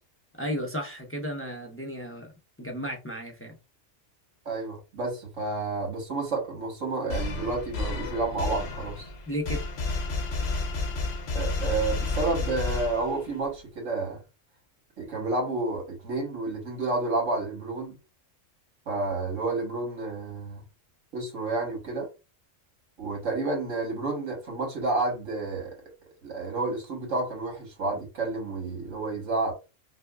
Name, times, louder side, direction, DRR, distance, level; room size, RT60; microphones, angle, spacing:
voice 1, 0.4-2.3 2.6-3.6 9.3-9.6, equal, 20° left, 0.3 m, -33 dB
voice 2, 4.4-9.1 11.3-14.2 15.0-18.0 18.9-20.6 21.1-22.1 23.0-25.7 26.2-29.5, right 3 dB, 80° right, 1.7 m, -30 dB
sound 1, 7.1-13.4, left 3 dB, 60° left, 0.9 m, -31 dB
5.0 x 2.2 x 2.3 m
omnidirectional pair, 1.3 m